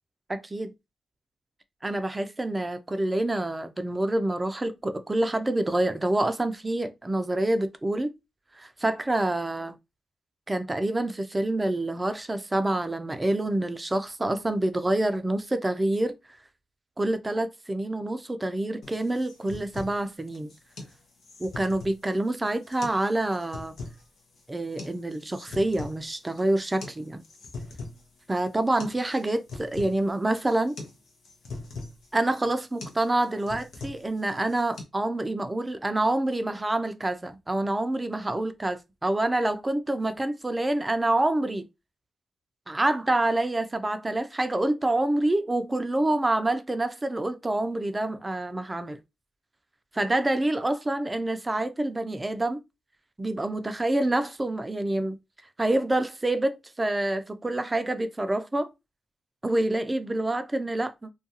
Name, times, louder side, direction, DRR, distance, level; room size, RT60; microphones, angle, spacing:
voice 1, 0.3-0.7 1.8-8.1 8.6-9.7 10.5-16.2 17.0-20.5 21.4-23.7 24.5-27.2 28.3-30.8 32.1-41.7 42.7-49.0 49.9-52.6 53.2-55.2 55.6-58.7 59.4-61.1, right 1 dB, 25° right, 0.4 m, -27 dB
sound 1, 18.8-34.8, left 3 dB, 75° left, 0.7 m, -43 dB
2.3 x 2.3 x 2.7 m
supercardioid pair, 45°, 0 cm